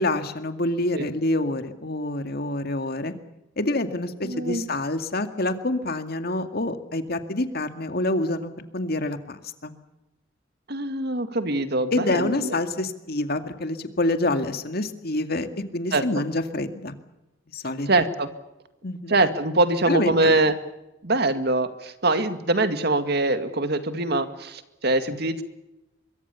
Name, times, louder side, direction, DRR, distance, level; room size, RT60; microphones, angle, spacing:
voice 1, 0.0-3.1 3.6-9.7 11.9-17.0 17.5-17.9 18.8-19.1 19.9-20.4, left 2 dB, 55° left, 8 dB, 2.2 m, -27 dB
voice 2, 4.2-4.7 10.7-12.6 15.9-16.0 17.9-18.3 19.1-20.5 21.0-25.4, right 2 dB, 55° right, 9 dB, 2.1 m, -23 dB
25.5 x 23.0 x 7.1 m, 0.96 s
head